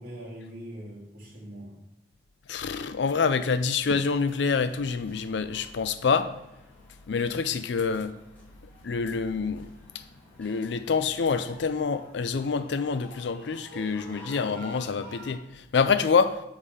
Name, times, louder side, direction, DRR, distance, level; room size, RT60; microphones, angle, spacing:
voice 1, 0.0-1.8 14.2-14.5, equal, 50° right, 2.9 m, -42 dB
voice 2, 2.5-6.3 7.1-8.1 8.8-10.0 10.4-16.4, left 5 dB, 70° left, 0.5 m, -26 dB
sound 1, 4.3-15.3, equal, 10° left, 2.1 m, -51 dB
7.3 x 4.9 x 5.6 m
head